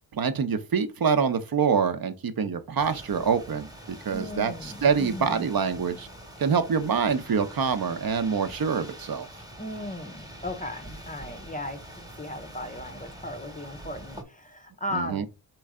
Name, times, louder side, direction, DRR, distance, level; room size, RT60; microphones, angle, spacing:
voice 1, 0.1-6.1 6.4-9.3 14.9-15.3, right 6 dB, 50° right, 0.8 m, -26 dB
sound 1, 2.8-14.2, right 1 dB, 10° right, 1.1 m, -45 dB
voice 2, 4.1-5.5 9.6-15.3, left 1 dB, 20° left, 0.6 m, -36 dB
4.4 x 3.1 x 3.6 m
wide cardioid pair, 90°, 45 cm